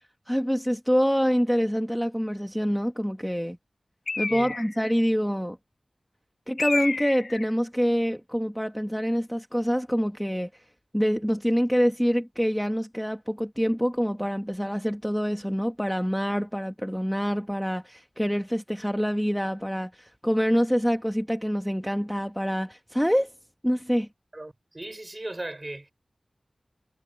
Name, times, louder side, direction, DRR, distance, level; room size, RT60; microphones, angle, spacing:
voice 1, 0.3-3.6 4.2-5.6 6.5-10.6 10.9-23.3 23.6-24.1, equal, ahead, 1.1 m, -26 dB
Bird, 4.1-4.9 6.6-7.5, left 3 dB, 75° left, 1.0 m, -30 dB
voice 2, 24.3-25.9, right 2 dB, 30° right, 6.2 m, -37 dB
wide cardioid pair, 85°, 0 cm